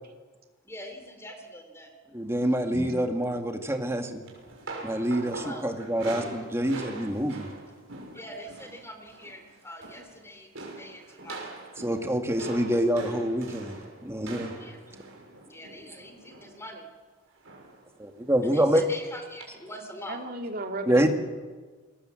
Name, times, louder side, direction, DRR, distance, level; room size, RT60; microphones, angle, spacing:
voice 1, 0.6-1.9 5.4-5.6 8.1-11.5 14.5-14.8 15.5-16.9 18.4-20.2, equal, 10° left, 5 dB, 3.4 m, -43 dB
voice 2, 2.1-4.2 4.8-7.5 11.8-14.5 18.0-18.9 20.9-21.1, right 1 dB, 10° right, 4 dB, 2.0 m, -26 dB
Guitar, 2.7-5.3, left 1 dB, 35° left, 4.0 m, -46 dB
sound 1, 4.3-8.8 9.1-9.4 9.7-10.2 10.6-16.6 17.4-17.8 18.2-18.3 19.4-19.5, right 2 dB, 60° right, 6.4 m, -42 dB
voice 3, 20.1-21.1, right 2 dB, 45° right, 3 dB, 2.8 m, -35 dB
28.5 x 21.0 x 7.7 m, 1.4 s
head